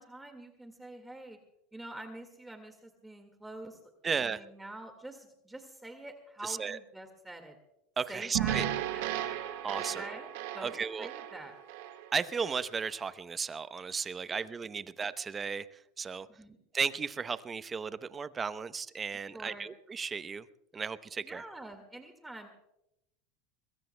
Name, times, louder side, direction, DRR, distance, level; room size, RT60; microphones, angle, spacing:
voice 1, 0.0-1.4 1.7-3.8 4.1-7.6 8.1-9.2 9.8-10.3 10.5-11.6 14.3-14.5 16.3-16.6 19.3-19.7 21.2-22.5, right 1 dB, 10° right, 5 dB, 1.8 m, -46 dB
voice 2, 4.0-4.4 6.4-6.8 8.0-8.6 9.6-10.0 10.6-11.1 12.1-16.3 16.7-20.5 20.7-21.4, right 5 dB, 25° right, 14 dB, 0.7 m, -35 dB
sound 1, 8.3-12.7, right 12 dB, 75° right, 1.6 m, -35 dB
22.0 x 22.0 x 2.2 m, 0.84 s
supercardioid pair, 110°, 0 cm